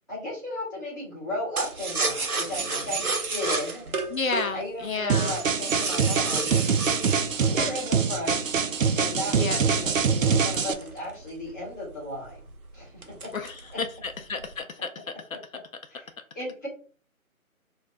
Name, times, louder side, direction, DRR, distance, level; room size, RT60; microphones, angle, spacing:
voice 1, 0.1-3.9 4.5-6.5 7.4-8.4 8.9-12.4 12.7-13.3 13.7-13.8 15.9-16.1 16.3-16.7, left 1 dB, 15° left, -10 dB, 0.8 m, -35 dB
sound 1, 1.6-8.5 9.0-11.5 11.8-11.9 12.2-12.6 13.0-13.7 14.0-14.6, right 4 dB, 80° right, 0.9 m, -31 dB
voice 2, 4.1-5.4 9.3-9.6 13.3-15.0, left 4 dB, 70° left, 6 dB, 0.6 m, -31 dB
sound 2, 5.1-10.7, right 6 dB, 65° right, 0.5 m, -24 dB
2.5 x 2.2 x 3.7 m, 0.41 s
figure-of-eight pair, 160°, 43 cm